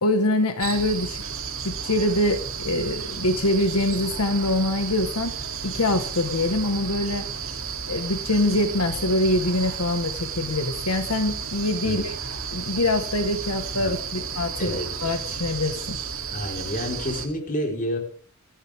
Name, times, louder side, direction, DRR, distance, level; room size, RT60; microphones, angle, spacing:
voice 1, 0.0-1.2 1.6-5.3 5.6-7.3 7.9-12.2 12.5-16.0, left 1 dB, 85° left, 7 dB, 1.5 m, -24 dB
sound 1, 0.6-17.3, right 6 dB, 65° right, 2.8 m, -33 dB
voice 2, 11.8-12.2 13.8-14.2 14.6-14.9 16.3-18.0, equal, 35° left, 2 dB, 4.4 m, -30 dB
27.5 x 12.0 x 3.6 m, 0.42 s
head